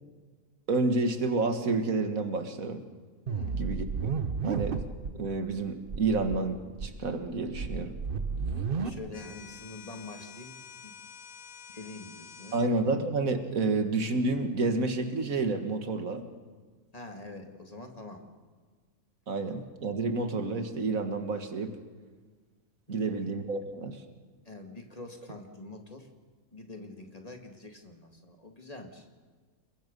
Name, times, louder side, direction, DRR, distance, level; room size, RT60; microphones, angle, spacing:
voice 1, 0.7-2.8 3.5-4.1 4.4-4.8 5.2-7.9 12.5-16.3 19.3-21.7 22.9-24.0, right 3 dB, 75° right, 7 dB, 2.0 m, -29 dB
voice 2, 3.3-3.6 8.8-10.5 10.8-10.9 11.7-12.7 16.9-18.2 22.9-23.2 24.5-26.1 26.5-29.1, left 2 dB, 25° left, 3 dB, 2.1 m, -45 dB
sound 1, 3.3-5.1 5.5-5.6 5.9-6.4 6.8-8.9, right 5 dB, 45° right, 1.2 m, -32 dB
sound 2, 9.1-12.7, left 7 dB, 75° left, 1.8 m, -48 dB
30.0 x 22.0 x 5.4 m, 1.5 s
omnidirectional pair, 1.4 m